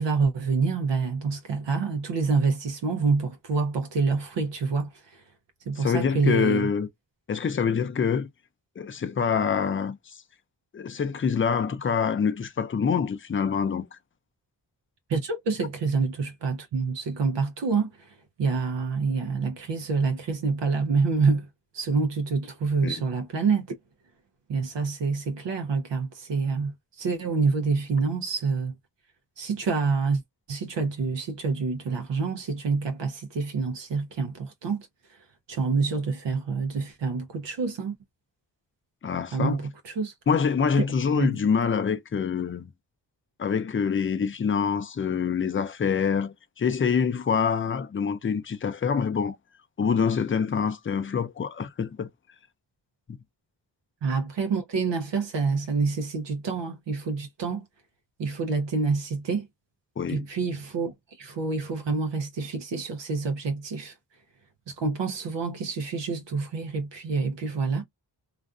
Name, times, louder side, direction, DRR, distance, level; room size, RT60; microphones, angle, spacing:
voice 1, 0.0-5.2 5.7-6.7 15.1-21.5 21.7-23.6 24.5-28.7 29.4-30.2 30.5-35.2 35.5-37.9 39.3-40.1 41.1-41.4 54.0-57.6 58.2-59.5 60.1-63.9 64.7-67.8, right 4 dB, 75° right, 0.6 m, -27 dB
voice 2, 5.8-6.9 7.3-8.3 8.8-10.1 10.7-13.8 22.8-23.0 39.0-39.6 40.3-42.7 43.4-49.4 49.8-52.1 60.0-60.2, left 6 dB, 30° left, 0.4 m, -25 dB
2.5 x 2.5 x 2.2 m
cardioid pair, 50°, 43 cm